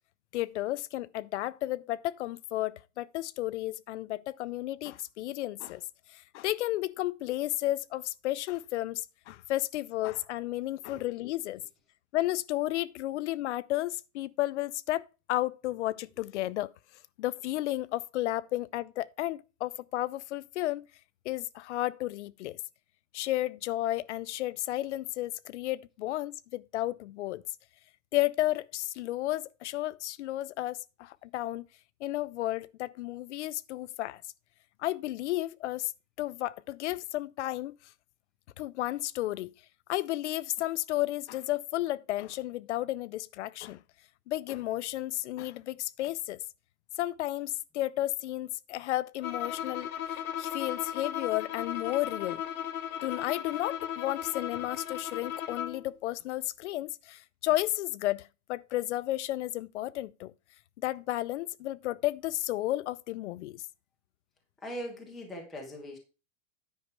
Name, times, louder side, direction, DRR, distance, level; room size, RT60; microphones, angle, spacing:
voice 1, 0.3-5.8 6.1-11.6 12.1-16.7 17.2-20.8 21.3-22.6 23.1-27.4 28.1-31.7 32.0-34.2 34.8-35.9 36.2-37.7 38.6-39.5 39.9-43.8 44.3-46.4 47.0-52.4 53.0-60.3 60.8-63.6, left 16 dB, 60° left, 0.5 m, -33 dB
Bowed string instrument, 49.2-55.9, left 10 dB, 90° left, 1.3 m, -36 dB
voice 2, 64.6-66.0, equal, ahead, 0.4 m, -40 dB
9.7 x 5.4 x 4.6 m
supercardioid pair, 175°, 41 cm